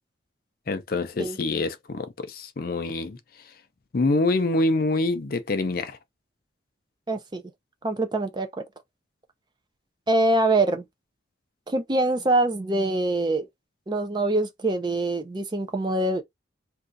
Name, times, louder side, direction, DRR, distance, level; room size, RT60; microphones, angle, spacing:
voice 1, 0.7-3.5 3.9-6.0, left 2 dB, 50° left, 0.5 m, -26 dB
voice 2, 7.1-7.4 7.8-8.5 10.1-10.8 11.7-13.5 13.9-16.2, right 2 dB, 25° right, 0.4 m, -24 dB
2.6 x 2.4 x 3.7 m
head